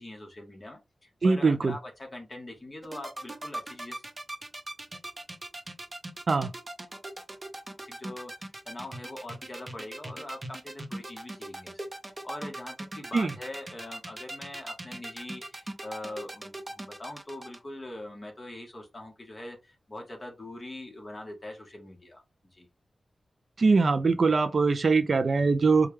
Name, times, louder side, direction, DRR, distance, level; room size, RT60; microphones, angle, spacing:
voice 1, 0.0-4.0 7.8-11.8 12.2-22.2 22.5-22.7, left 1 dB, 30° left, 1.3 m, -43 dB
voice 2, 1.2-1.8 6.3-6.5 13.1-13.3 23.6-25.9, right 4 dB, 50° right, 0.4 m, -22 dB
sound 1, 2.8-17.6, right 1 dB, 25° right, 0.7 m, -39 dB
4.4 x 2.3 x 3.2 m
wide cardioid pair, 105°, 0 cm